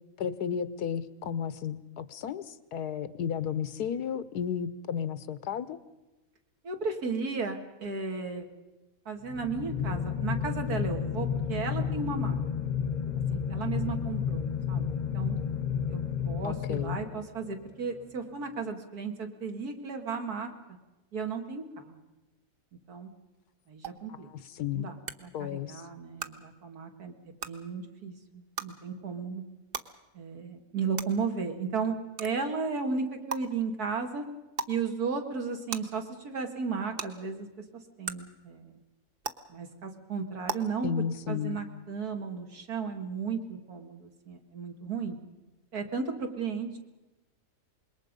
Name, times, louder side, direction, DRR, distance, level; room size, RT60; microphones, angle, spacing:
voice 1, 0.2-5.8 16.4-17.0 24.5-24.9 25.3-25.8 40.8-41.6, left 8 dB, 90° left, 15 dB, 1.4 m, -33 dB
voice 2, 6.6-8.5 9.1-12.4 13.3-14.9 15.1-15.4 15.9-20.8 21.1-22.0 22.9-23.1 23.7-24.3 24.6-29.4 30.1-34.3 34.7-37.5 38.0-38.8 39.5-40.9 41.3-45.2 45.7-46.8, right 5 dB, 75° right, 4 dB, 2.5 m, -34 dB
sound 1, 9.2-17.6, left 7 dB, 40° left, 0.8 m, -31 dB
sound 2, 23.8-23.9 25.1-25.2 26.2-26.3 27.4-27.5 28.6-28.7 29.7-29.8 31.0-31.1 32.2-32.3 33.3-33.4 34.5-34.7 35.7-35.8 37.0-37.1 38.0-38.1 39.2-39.3 40.5-40.6, right 5 dB, 45° right, 1.0 m, -33 dB
26.0 x 21.5 x 5.3 m, 1.0 s
omnidirectional pair, 1.6 m